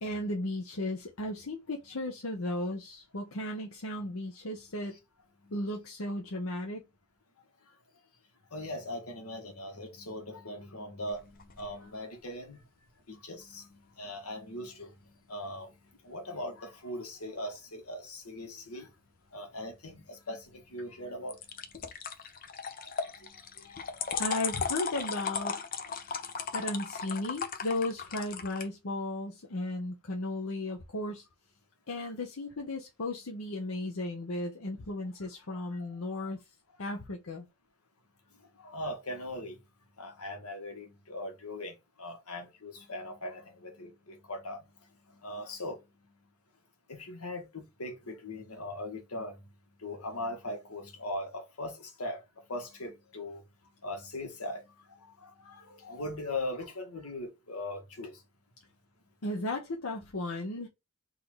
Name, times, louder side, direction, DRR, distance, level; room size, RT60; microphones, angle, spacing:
voice 1, 0.0-5.0 5.5-6.8 24.2-25.6 26.5-31.2 31.9-36.4 36.8-37.5 59.2-60.7, left 1 dB, 70° left, 0.8 m, -35 dB
voice 2, 8.5-12.6 13.1-14.9 15.3-15.7 16.0-18.9 19.3-21.4 23.0-24.2 26.0-26.1 35.5-35.9 36.2-36.3 38.6-39.6 40.0-44.6 45.2-45.8 46.9-49.4 49.8-52.2 52.5-53.4 53.8-58.2, left 1 dB, 90° left, 1.5 m, -40 dB
sound 1, 11.0-11.7 21.3-28.7, left 6 dB, 40° left, 0.7 m, -37 dB
3.9 x 2.8 x 4.7 m
head